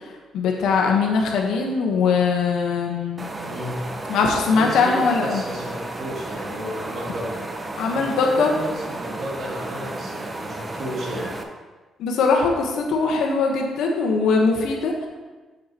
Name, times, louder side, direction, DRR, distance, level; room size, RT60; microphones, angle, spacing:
voice 1, 0.3-3.2 4.1-5.4 7.8-8.5 12.0-15.1, left 4 dB, 85° left, 1 dB, 1.0 m, -21 dB
sound 1, 3.2-11.4, right 2 dB, 25° right, 0.7 m, -33 dB
voice 2, 3.5-3.8 4.5-7.5 7.9-11.4, equal, 60° right, -4 dB, 2.2 m, -32 dB
7.6 x 6.5 x 2.9 m, 1.3 s
cardioid pair, 90°, 0 cm